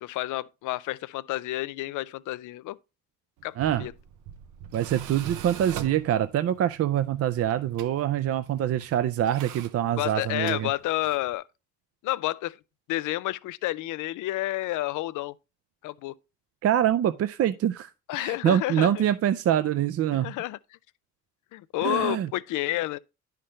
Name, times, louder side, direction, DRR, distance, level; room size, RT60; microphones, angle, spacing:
voice 1, 0.0-2.8 3.4-3.5 3.8-3.9 10.0-11.4 12.0-12.6 12.9-15.3 15.8-16.1 18.1-19.0 20.1-20.6 21.5-23.0, left 17 dB, 80° left, 0.5 m, -30 dB
Tools, 3.4-11.3, right 9 dB, 85° right, 0.7 m, -43 dB
voice 2, 3.6-3.9 4.7-10.7 16.6-17.9 18.2-20.3 21.8-22.3, right 10 dB, 50° right, 0.5 m, -25 dB
10.0 x 5.9 x 3.1 m
cardioid pair, 90°, 30 cm